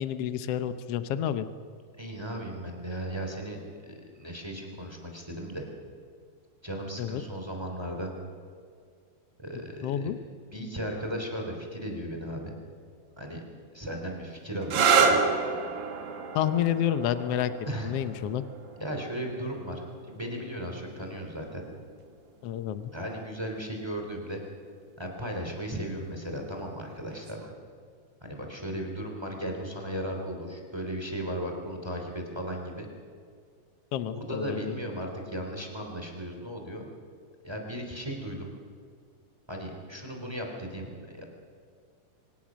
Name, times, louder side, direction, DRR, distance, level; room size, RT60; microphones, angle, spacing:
voice 1, 0.0-1.5 7.0-7.2 9.8-10.2 16.3-17.5 17.8-18.4 22.4-22.9 33.9-34.7, left 10 dB, 75° left, 11 dB, 1.4 m, -29 dB
voice 2, 2.0-5.7 6.6-8.1 9.4-10.1 10.5-12.5 13.2-13.4 13.7-15.2 17.6-17.9 18.8-21.6 22.9-24.4 25.0-27.5 28.2-32.9 34.1-36.9 37.4-38.5 39.5-41.2, equal, 10° right, 2 dB, 3.0 m, -36 dB
sound 1, 14.6-22.1 23.1-23.6 27.1-27.5, right 5 dB, 65° right, 3.1 m, -30 dB
24.5 x 19.5 x 6.3 m, 2.2 s
omnidirectional pair, 3.9 m